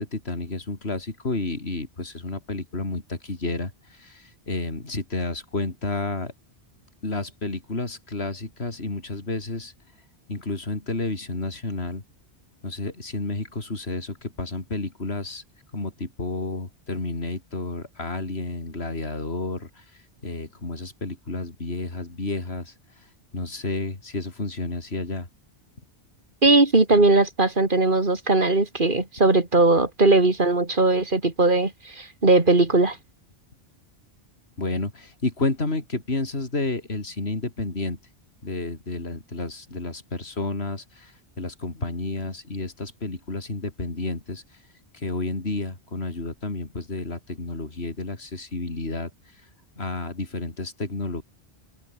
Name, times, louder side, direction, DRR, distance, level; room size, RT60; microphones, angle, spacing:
voice 1, 0.0-6.3 7.0-9.7 10.3-12.0 12.6-15.4 15.7-19.8 20.2-22.7 23.3-25.3 34.6-38.0 38.4-44.4 44.9-49.1 49.8-51.2, left 2 dB, 70° left, 3.9 m, -31 dB
voice 2, 26.4-33.0, right 2 dB, 50° right, 3.1 m, -19 dB
omnidirectional pair, 1.1 m